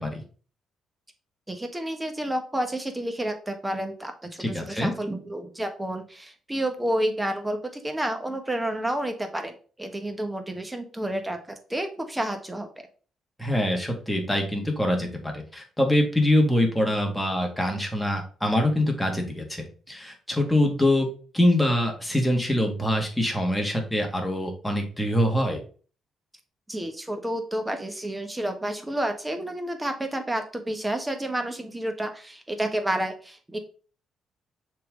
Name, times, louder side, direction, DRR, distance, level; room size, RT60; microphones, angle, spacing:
voice 1, 1.5-12.7 26.7-33.6, right 1 dB, 10° right, 6 dB, 1.3 m, -30 dB
voice 2, 4.4-4.9 13.4-21.1 21.3-25.6, left 1 dB, 5° left, 1 dB, 2.0 m, -24 dB
6.5 x 3.9 x 3.8 m, 0.40 s
cardioid pair, 90°, 0 cm